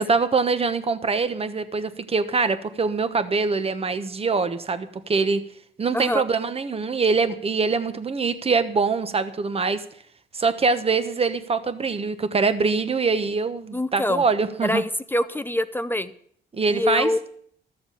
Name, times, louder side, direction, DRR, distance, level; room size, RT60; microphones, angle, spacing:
voice 1, 0.0-5.4 5.8-9.8 10.3-14.8 16.5-17.1, right 4 dB, 30° right, 11 dB, 1.1 m, -23 dB
voice 2, 13.7-14.2 14.6-16.1 16.7-17.2, left 1 dB, 10° left, 12 dB, 0.6 m, -25 dB
13.5 x 7.1 x 6.9 m, 0.64 s
cardioid pair, 90°, 20 cm